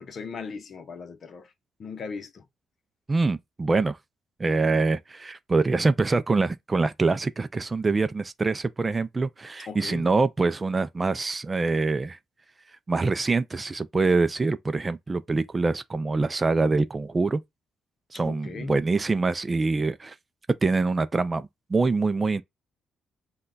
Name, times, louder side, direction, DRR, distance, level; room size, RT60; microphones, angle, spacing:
voice 1, 0.0-1.5 1.8-2.4 9.7-10.0 18.2-18.7, left 5 dB, 50° left, 0.7 m, -38 dB
voice 2, 3.1-4.0 4.4-12.2 12.9-17.4 18.1-20.1 20.6-22.4, right 3 dB, 25° right, 0.4 m, -25 dB
5.4 x 2.3 x 3.9 m
cardioid pair, 90°, 0 cm